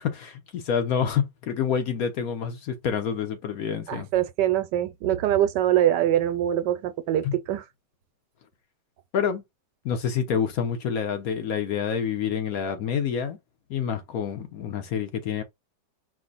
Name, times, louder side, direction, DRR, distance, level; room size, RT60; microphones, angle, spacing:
voice 1, 0.0-4.1 7.2-7.4 9.1-9.4 9.8-13.4 13.7-15.4, left 7 dB, 65° left, 1.1 m, -27 dB
voice 2, 3.9-7.6, right 12 dB, 80° right, 1.2 m, -23 dB
4.9 x 2.1 x 3.9 m
omnidirectional pair, 1.8 m